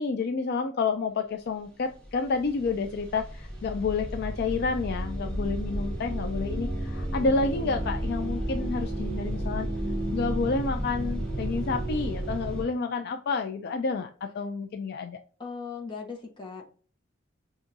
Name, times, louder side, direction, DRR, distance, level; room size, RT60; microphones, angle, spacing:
voice 1, 0.0-9.7 10.1-15.2, left 4 dB, 55° left, 6 dB, 0.4 m, -29 dB
sound 1, 1.6-1.7 1.9-12.6, right 1 dB, 5° left, 1.9 m, -32 dB
voice 2, 15.4-16.7, left 5 dB, 25° left, 0 dB, 1.1 m, -38 dB
5.8 x 2.7 x 2.6 m, 0.41 s
head